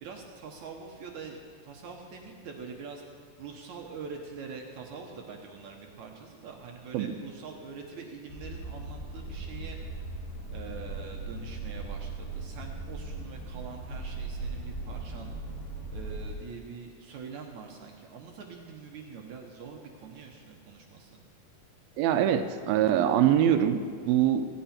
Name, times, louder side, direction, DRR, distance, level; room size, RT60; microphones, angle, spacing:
voice 1, 0.0-3.0 3.4-10.0 10.5-15.3 15.9-21.2, right 5 dB, 65° right, 1 dB, 2.2 m, -44 dB
sound 1, 8.3-16.3, right 3 dB, 60° left, 4.5 m, -38 dB
voice 2, 22.0-24.5, right 10 dB, 85° right, 8 dB, 2.6 m, -24 dB
16.5 x 16.5 x 4.4 m, 2.1 s
omnidirectional pair, 4.2 m